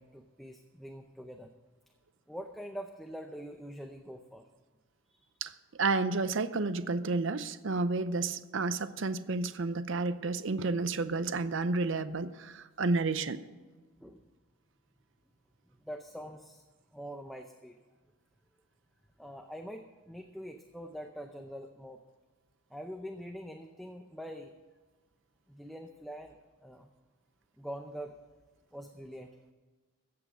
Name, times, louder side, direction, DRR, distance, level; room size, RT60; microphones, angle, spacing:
voice 1, 0.0-1.5 2.3-4.4 5.1-5.3 14.0-14.3 15.8-16.6 16.9-17.8 19.2-22.0 22.7-24.5 25.5-26.9 27.6-28.2 28.7-29.3, equal, ahead, 4 dB, 0.6 m, -44 dB
voice 2, 5.8-13.4, right 3 dB, 60° right, 13 dB, 0.6 m, -31 dB
14.5 x 8.5 x 6.1 m, 1.3 s
head